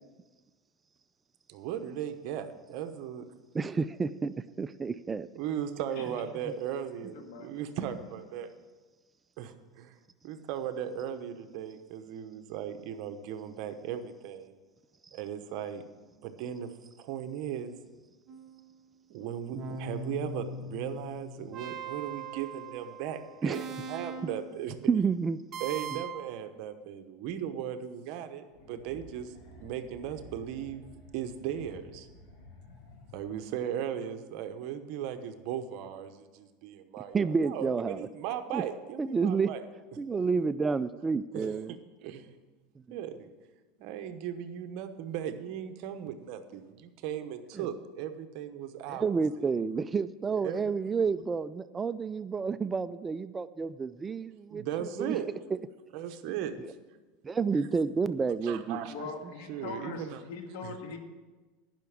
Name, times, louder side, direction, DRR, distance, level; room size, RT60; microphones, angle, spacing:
voice 1, 1.5-3.2 5.3-8.5 9.4-10.0 10.2-14.5 15.1-15.8 16.2-16.7 17.0-17.7 19.1-24.8 25.6-30.8 31.1-32.1 33.1-39.6 41.3-42.4 42.9-43.3 43.8-49.1 49.4-49.5 50.3-50.7 54.5-55.3 55.9-56.5 58.4-58.9 59.5-60.2 60.6-60.7, right 9 dB, 60° right, 8 dB, 1.0 m, -37 dB
voice 2, 3.5-5.3 23.4-23.6 24.9-25.4 37.1-38.1 38.5-38.6 39.0-39.5 40.0-41.7 42.9-43.0 47.6-47.7 48.9-54.7 55.0-55.2 56.6-56.7 57.2-58.8, right 5 dB, 20° right, 14 dB, 0.3 m, -30 dB
voice 3, 7.2-7.5 58.9-61.0, left 4 dB, 75° left, 5 dB, 1.7 m, -41 dB
sound 1, 18.3-18.8 19.5-24.6 25.5-26.3, right 3 dB, 35° right, 1.4 m, -40 dB
sound 2, 28.5-33.7, left 2 dB, 55° left, 3.3 m, -53 dB
10.5 x 5.8 x 8.7 m, 1.3 s
supercardioid pair, 130°, 0 cm